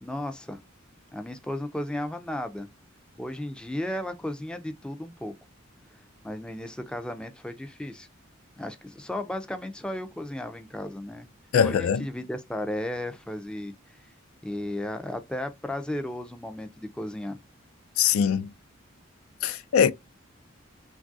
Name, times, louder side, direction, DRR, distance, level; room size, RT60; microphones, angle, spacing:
voice 1, 0.0-0.6 1.1-2.7 3.2-5.3 6.2-8.1 8.6-11.3 11.6-13.7 14.4-17.4, left 1 dB, 5° left, 0.3 m, -34 dB
voice 2, 11.5-12.0 18.0-18.5 19.4-19.9, left 7 dB, 90° left, 0.3 m, -22 dB
3.1 x 2.3 x 2.5 m
head